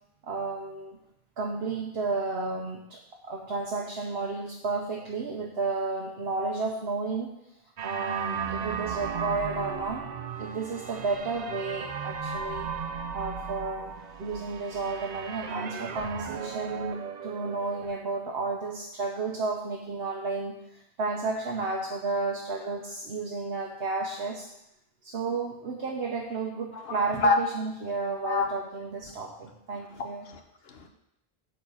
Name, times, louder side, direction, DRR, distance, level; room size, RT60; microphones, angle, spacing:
voice 1, 0.2-1.0 1.4-7.3 7.8-10.0 10.4-12.7 13.1-24.5 25.0-30.2, right 3 dB, 70° right, -1 dB, 1.2 m, -32 dB
sound 1, 7.8-17.9, right 6 dB, 50° right, 0.6 m, -36 dB
voice 2, 26.7-27.4 28.2-28.5 29.9-30.9, left 3 dB, 70° left, 6 dB, 1.2 m, -28 dB
8.5 x 4.3 x 7.1 m, 0.84 s
omnidirectional pair, 1.1 m